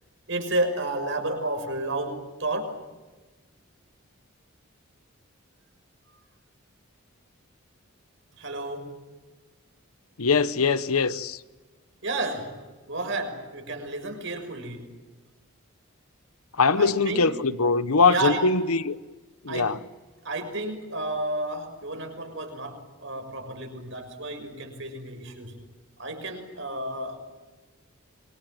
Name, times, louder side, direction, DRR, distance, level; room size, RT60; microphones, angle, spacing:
voice 1, 0.3-2.8 8.4-9.0 12.0-14.9 16.7-17.2 18.1-18.5 19.5-19.7 20.2-25.6 26.0-27.2, right 2 dB, 60° right, 6.1 m, -31 dB
voice 2, 10.2-11.4 16.5-19.0 19.4-19.8, left 4 dB, 90° left, 1.1 m, -22 dB
27.0 x 24.5 x 7.7 m
head